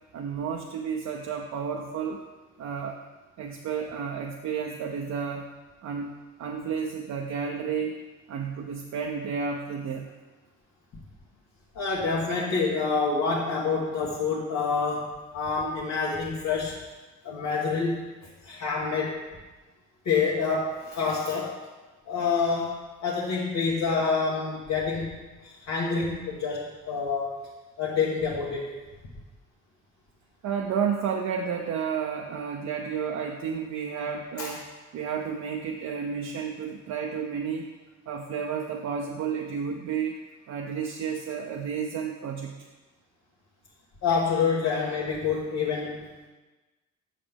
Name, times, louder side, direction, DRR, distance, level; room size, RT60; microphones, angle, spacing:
voice 1, 0.1-2.2 2.6-3.0 3.4-5.5 5.8-6.1 6.4-8.0 8.3-10.1 30.4-34.6 34.9-37.7 38.1-40.2 40.5-42.7, right 6 dB, 65° right, 2 dB, 0.6 m, -31 dB
voice 2, 11.7-16.8 17.2-18.1 18.4-19.2 20.0-21.6 22.1-22.7 23.0-25.2 25.4-27.3 27.8-28.7 34.4-34.6 44.0-46.1, left 5 dB, 70° left, -6 dB, 1.3 m, -27 dB
7.4 x 5.9 x 3.5 m, 1.2 s
cardioid pair, 90°, 30 cm